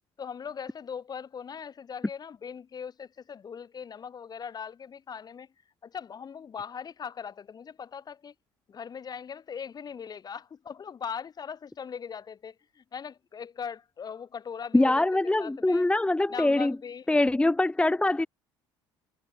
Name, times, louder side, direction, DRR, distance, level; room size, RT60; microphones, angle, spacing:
voice 1, 0.2-5.5 5.8-8.3 8.7-15.8 16.3-17.1, left 7 dB, 40° left, 3.0 m, -40 dB
voice 2, 14.7-16.7 17.1-18.3, left 2 dB, 10° left, 1.0 m, -23 dB
supercardioid pair, 75°, 11 cm